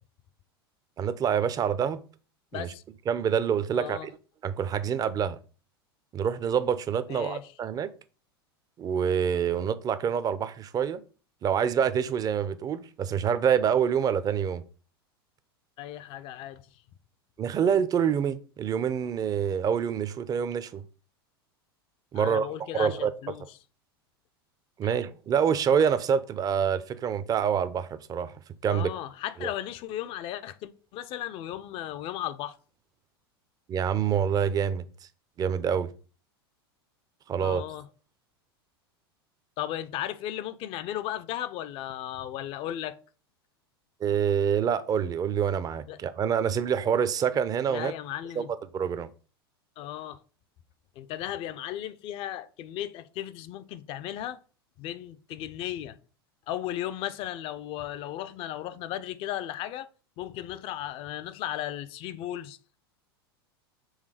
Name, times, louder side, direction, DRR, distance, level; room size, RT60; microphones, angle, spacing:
voice 1, 1.0-2.0 2.5-2.7 3.1-4.1 4.4-5.4 6.1-7.9 8.8-11.0 11.4-14.6 17.4-20.8 22.1-22.5 22.7-23.1 24.8-28.3 28.6-28.9 29.4-29.5 33.7-34.8 35.4-35.9 37.3-37.6 44.0-47.9 48.4-48.5 48.7-49.1, right 8 dB, 30° right, 0.7 m, -26 dB
voice 2, 2.5-2.8 3.7-4.1 7.1-7.5 15.8-16.6 22.2-23.4 24.8-25.0 28.7-32.6 37.4-37.9 39.6-43.0 45.9-46.0 47.7-48.5 49.8-50.2 51.0-54.4 54.8-56.0 56.5-59.9 60.2-62.6, left 12 dB, 45° left, 0.6 m, -35 dB
6.5 x 3.4 x 4.9 m
hypercardioid pair, 90°, 13 cm